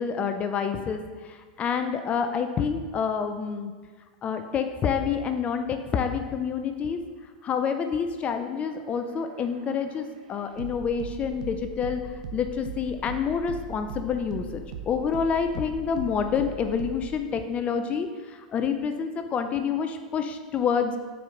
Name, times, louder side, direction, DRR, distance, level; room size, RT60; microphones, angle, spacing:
voice 1, 0.0-3.7 4.2-7.1 7.4-12.0 12.3-21.0, left 6 dB, 35° left, 7 dB, 0.5 m, -28 dB
sound 1, 8.5-17.2, right 4 dB, 70° right, 0.8 m, -40 dB
6.2 x 4.6 x 5.1 m, 1.4 s
hypercardioid pair, 95°, 4 cm